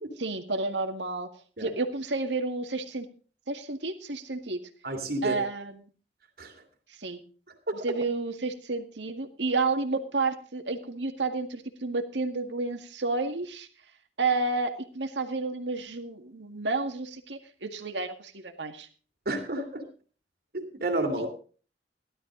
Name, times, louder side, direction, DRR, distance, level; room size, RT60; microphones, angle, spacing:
voice 1, 0.2-1.3 1.6-3.1 3.5-4.6 5.2-5.9 7.0-7.2 7.8-13.7 14.2-18.9 21.2-21.3, right 3 dB, 85° right, 6 dB, 1.9 m, -31 dB
voice 2, 4.8-5.4 6.4-6.5 7.7-7.8 19.2-19.8 20.5-21.3, right 1 dB, 55° right, 4 dB, 3.0 m, -30 dB
16.0 x 12.0 x 3.8 m, 0.39 s
head